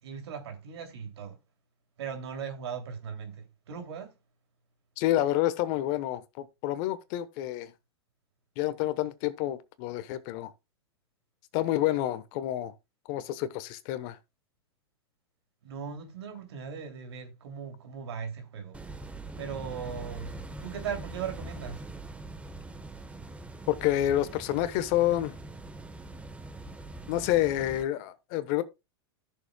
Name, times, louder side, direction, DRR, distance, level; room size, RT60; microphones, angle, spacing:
voice 1, 0.0-1.4 2.0-4.1 15.6-18.8 19.4-21.8, right 7 dB, 75° right, 2.9 m, -38 dB
voice 2, 5.0-7.7 8.6-10.5 11.5-12.7 13.1-14.2 23.7-25.3 27.1-28.6, left 13 dB, 50° left, 1.1 m, -28 dB
sound 1, 18.7-27.8, right 3 dB, 10° right, 1.2 m, -43 dB
14.0 x 6.7 x 2.3 m
hypercardioid pair, 110°, 14 cm